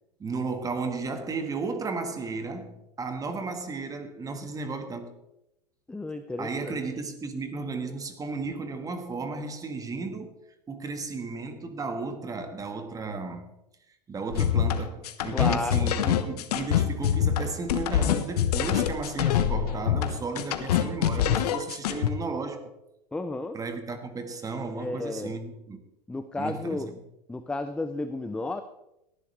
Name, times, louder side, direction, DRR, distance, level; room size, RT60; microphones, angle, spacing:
voice 1, 0.2-5.1 6.4-10.4 10.7-13.5 14.1-22.7 23.5-25.8 26.3-27.0, right 4 dB, 15° right, 1.6 m, -34 dB
voice 2, 5.9-6.8 15.3-15.9 23.1-23.6 24.8-25.4 26.1-26.9 27.3-28.6, left 2 dB, 5° left, 0.5 m, -32 dB
sound 1, 14.3-22.1, left 10 dB, 75° left, 1.3 m, -25 dB
18.0 x 11.5 x 3.3 m
hypercardioid pair, 125°, 21 cm